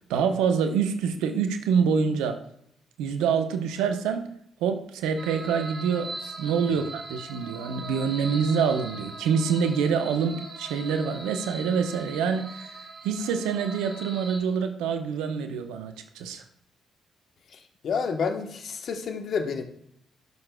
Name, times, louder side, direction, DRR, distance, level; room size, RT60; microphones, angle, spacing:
voice 1, 0.1-2.4 3.0-4.3 4.6-12.8 13.0-16.4, right 6 dB, 75° right, 7 dB, 0.8 m, -26 dB
sound 1, 5.2-14.4, right 3 dB, 50° right, 2.9 m, -40 dB
voice 2, 17.5-19.6, left 5 dB, 60° left, 6 dB, 1.1 m, -29 dB
13.5 x 6.7 x 2.2 m, 0.72 s
hypercardioid pair, 45°, 0 cm